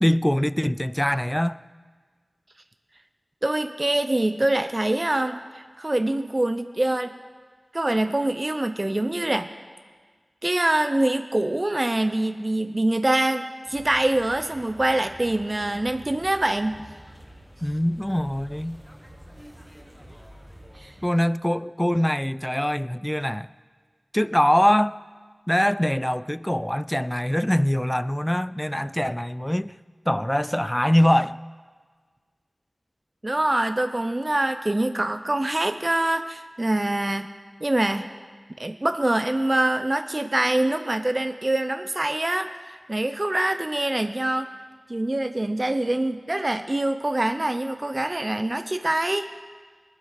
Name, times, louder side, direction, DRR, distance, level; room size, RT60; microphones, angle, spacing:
voice 1, 0.0-1.6 17.6-18.8 21.0-23.5 24.1-25.0 25.5-29.7 30.1-31.4, equal, 10° left, 0.4 m, -23 dB
voice 2, 3.4-7.1 7.7-9.5 10.4-16.8 20.8-20.9 33.2-37.3 37.6-38.1 38.6-44.5 44.9-49.3, right 1 dB, 40° right, 0.6 m, -24 dB
sound 1, 13.7-21.1, equal, 10° right, 1.6 m, -47 dB
20.0 x 9.3 x 6.6 m
wide cardioid pair, 50°, 0 cm